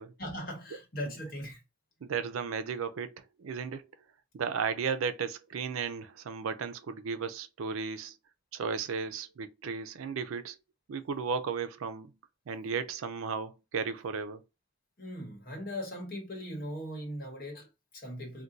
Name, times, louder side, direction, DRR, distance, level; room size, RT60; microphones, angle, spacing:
voice 1, 0.2-1.6 15.0-18.4, equal, 45° left, 1.1 m, -39 dB
voice 2, 2.0-3.9 4.3-8.1 8.5-10.6 10.9-12.1 12.5-14.4, right 5 dB, 85° right, 0.4 m, -35 dB
2.5 x 2.2 x 3.9 m
head